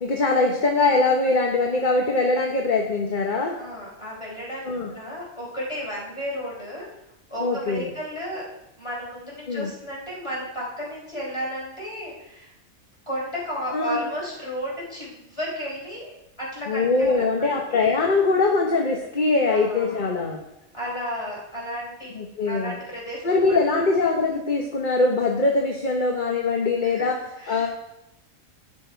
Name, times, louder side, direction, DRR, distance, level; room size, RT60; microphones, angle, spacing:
voice 1, 0.0-3.5 4.6-4.9 7.4-7.9 9.5-9.7 13.7-14.0 16.7-20.4 22.1-22.8 23.2-27.7, left 3 dB, 40° left, 1 dB, 1.2 m, -22 dB
voice 2, 3.6-6.9 7.3-8.5 8.8-12.5 13.1-16.1 16.4-17.5 19.5-20.0 20.7-22.2 22.5-23.6 26.9-27.7, equal, 20° left, -4 dB, 4.3 m, -33 dB
17.0 x 6.1 x 4.6 m, 0.87 s
omnidirectional pair, 1.4 m